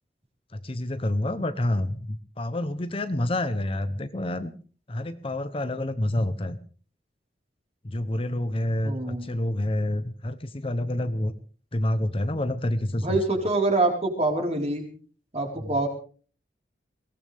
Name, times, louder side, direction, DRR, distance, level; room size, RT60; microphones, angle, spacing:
voice 1, 0.5-4.5 4.9-6.6 7.8-11.3 11.7-13.2 15.6-15.7, left 1 dB, 30° left, 11 dB, 0.9 m, -28 dB
voice 2, 8.8-9.3 13.0-14.9 15.3-15.9, right 2 dB, 35° right, 2 dB, 4.6 m, -25 dB
22.5 x 18.0 x 3.5 m, 0.42 s
head